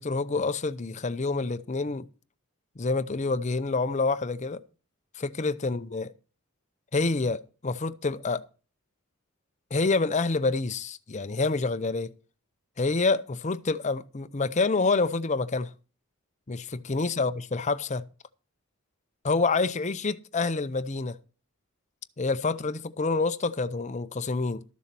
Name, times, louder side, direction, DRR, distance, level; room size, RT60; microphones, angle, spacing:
voice 1, 0.0-2.1 2.8-4.6 5.2-6.1 6.9-8.4 9.7-12.1 12.8-15.7 16.5-18.0 19.2-21.2 22.2-24.6, left 3 dB, 30° left, 0.6 m, -27 dB
13.0 x 7.1 x 5.9 m
head